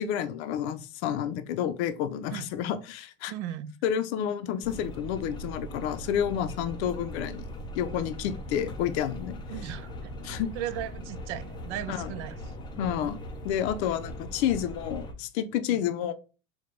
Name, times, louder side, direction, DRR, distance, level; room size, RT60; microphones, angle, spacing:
voice 1, 0.0-3.3 3.8-7.5 7.7-9.4 10.2-10.5 11.9-12.1 12.8-13.2 13.4-16.1, left 9 dB, 70° left, 0.6 m, -30 dB
voice 2, 3.3-3.7 9.5-12.4 12.8-13.1 15.7-15.8, right 11 dB, 70° right, 0.6 m, -37 dB
sound 1, 4.6-15.1, equal, 15° left, 0.3 m, -40 dB
4.7 x 2.2 x 3.7 m
supercardioid pair, 140°, 35 cm